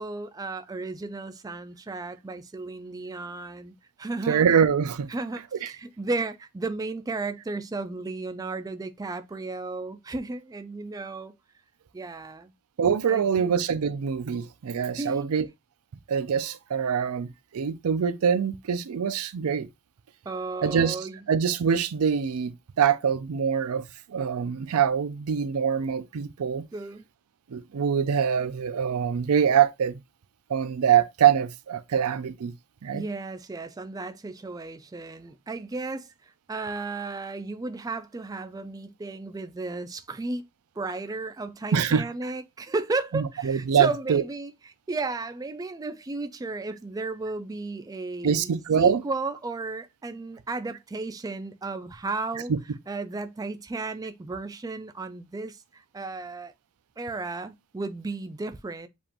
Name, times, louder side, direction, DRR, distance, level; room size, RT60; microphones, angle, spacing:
voice 1, 0.0-4.4 5.1-11.3 11.9-12.5 13.1-13.5 15.0-15.3 20.3-21.2 26.7-27.1 32.9-40.4 40.8-44.5 44.9-48.5 48.8-52.5 52.9-56.5 57.0-58.9, right 3 dB, 15° right, 0.3 m, -34 dB
voice 2, 4.3-5.1 5.6-5.7 12.8-15.5 16.1-19.7 20.6-22.5 22.8-26.6 27.5-30.0 30.5-32.5 32.8-33.0 41.7-42.0 43.1-44.2 48.2-49.0 52.5-52.6, right 7 dB, 80° right, 0.4 m, -24 dB
7.0 x 2.5 x 2.9 m
head